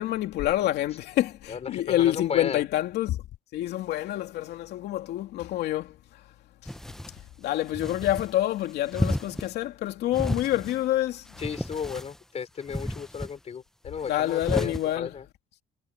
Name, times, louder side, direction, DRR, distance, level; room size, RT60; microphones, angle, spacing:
voice 1, 0.0-3.2 3.5-5.9 7.4-11.2 14.1-15.1, left 14 dB, 75° left, 2.8 m, -27 dB
voice 2, 1.5-2.6 11.4-15.3, left 6 dB, 40° left, 4.4 m, -34 dB
sound 1, 6.7-7.2 7.7-8.3 8.9-9.5 10.1-10.8 11.3-12.2 12.7-13.3 14.3-14.8, left 1 dB, 5° left, 0.7 m, -32 dB
cardioid pair, 110°, 17 cm